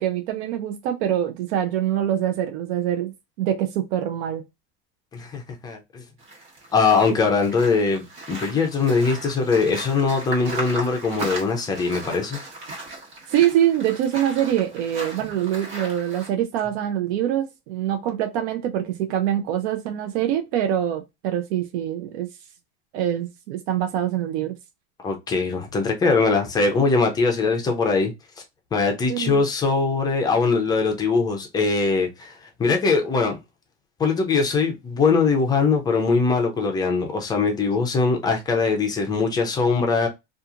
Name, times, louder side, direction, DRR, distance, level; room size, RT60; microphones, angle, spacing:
voice 1, 0.0-4.4 13.3-22.3 22.9-24.6 29.1-29.4, right 11 dB, 85° right, 0.6 m, -24 dB
voice 2, 5.1-6.0 6.7-12.4 25.0-28.1 28.7-33.4 34.0-40.1, left 4 dB, 15° left, 0.4 m, -21 dB
sound 1, 6.2-16.3, right 2 dB, 55° right, 1.5 m, -36 dB
2.7 x 2.4 x 2.4 m
cardioid pair, 160°, 31 cm